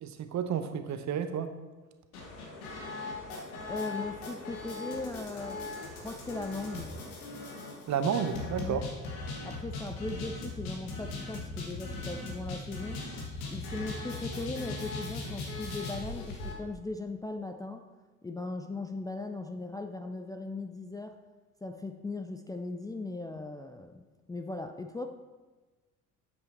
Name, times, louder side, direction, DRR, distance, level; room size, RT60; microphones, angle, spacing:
voice 1, 0.0-1.5 7.9-8.8, right 7 dB, 40° right, 9 dB, 0.9 m, -31 dB
sound 1, 2.1-16.5, left 2 dB, 75° left, 1.6 m, -39 dB
voice 2, 3.4-5.7 5.9-6.9 8.6-8.9 9.4-13.0 13.5-17.9 18.2-21.2 21.6-25.1, left 2 dB, 10° left, 5 dB, 0.5 m, -38 dB
8.8 x 8.1 x 4.3 m, 1.3 s
figure-of-eight pair, 55°, 42 cm